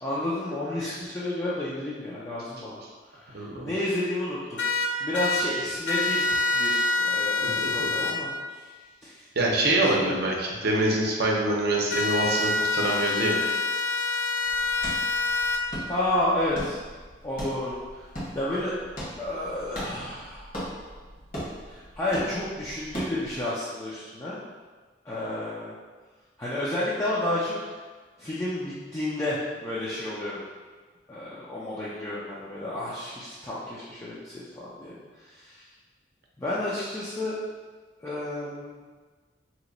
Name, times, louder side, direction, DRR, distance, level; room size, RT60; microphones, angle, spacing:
voice 1, 0.0-2.8 3.1-4.6 5.0-8.3 8.6-8.7 9.0-9.3 9.8-10.2 15.9-16.8 17.2-18.1 18.3-18.7 19.2-20.5 21.7-24.4 25.0-25.7 26.4-27.6 28.2-30.4 31.1-35.7 36.4-37.3 38.0-38.8, left 1 dB, 15° left, -8 dB, 0.4 m, -31 dB
voice 2, 3.3-3.7 7.4-8.1 9.4-13.4, right 1 dB, 60° right, -2 dB, 0.6 m, -25 dB
sound 1, 4.6-5.4 5.9-8.1 11.9-15.6, left 3 dB, 75° left, 0.4 m, -26 dB
sound 2, 14.4-23.4, equal, 50° left, 1.3 m, -39 dB
2.9 x 2.2 x 3.8 m, 1.4 s
head